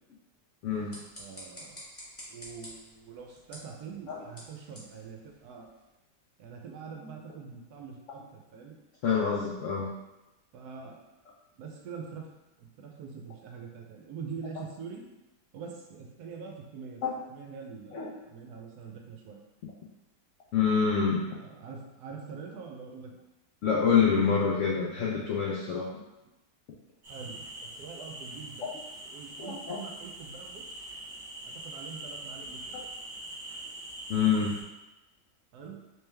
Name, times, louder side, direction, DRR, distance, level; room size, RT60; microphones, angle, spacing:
voice 1, 0.6-1.0 4.1-4.2 9.0-9.9 17.0-17.1 17.9-18.1 20.5-21.3 23.6-25.9 29.4-29.8 34.1-34.6, left 6 dB, 75° left, -3 dB, 0.6 m, -26 dB
sound 1, 0.6-5.9, equal, 15° left, 0.5 m, -50 dB
voice 2, 1.2-1.8 2.3-5.7 6.4-8.8 10.5-11.0 11.6-12.3 12.6-15.0 15.5-17.0 17.3-19.4 21.3-23.1 27.1-28.8 29.0-30.7 31.4-32.8 35.5-35.8, right 5 dB, 75° right, 1 dB, 1.0 m, -44 dB
sound 2, 27.0-34.6, right 1 dB, 35° right, 0.9 m, -43 dB
3.2 x 3.1 x 3.3 m, 0.99 s
omnidirectional pair, 1.8 m